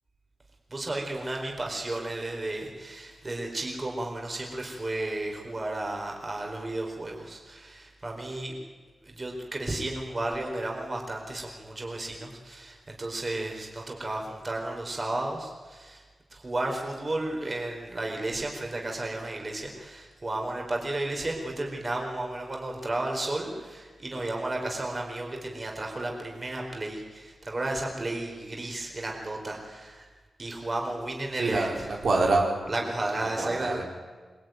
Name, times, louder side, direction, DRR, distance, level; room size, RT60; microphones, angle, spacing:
voice 1, 0.7-8.6 9.2-16.0 16.3-30.0 30.4-31.7 32.7-33.8, right 2 dB, 30° right, 1 dB, 4.5 m, -33 dB
voice 2, 31.3-32.5 33.2-33.8, right 3 dB, 70° right, 0 dB, 4.5 m, -26 dB
25.0 x 21.5 x 9.4 m, 1.4 s
wide cardioid pair, 120°, 0 cm